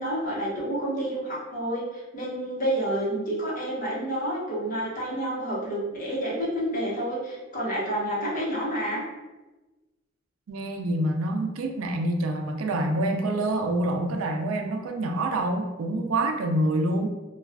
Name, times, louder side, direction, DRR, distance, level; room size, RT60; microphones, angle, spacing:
voice 1, 0.0-9.0, right 1 dB, 40° left, -6 dB, 0.9 m, -29 dB
voice 2, 10.5-17.1, right 1 dB, 85° right, 5 dB, 0.4 m, -26 dB
2.3 x 2.3 x 3.3 m, 1.1 s
head